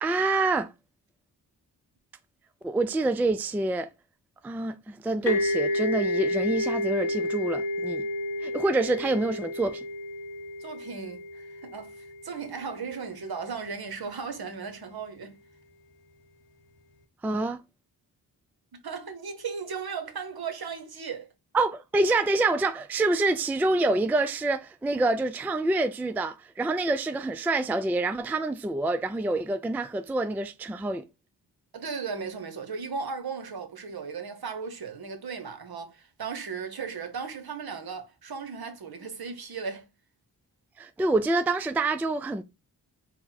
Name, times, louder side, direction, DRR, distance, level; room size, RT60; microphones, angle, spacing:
voice 1, 0.0-0.7 2.6-3.9 4.4-8.1 8.4-9.8 17.2-17.6 21.5-31.0 40.8-42.4, right 2 dB, 5° right, 0.3 m, -26 dB
sound 1, 5.3-12.8, left 1 dB, 85° left, 1.0 m, -30 dB
voice 2, 10.6-15.4 18.7-21.3 31.7-39.9, right 5 dB, 60° right, 1.0 m, -36 dB
4.2 x 2.2 x 4.1 m
cardioid pair, 50°, 42 cm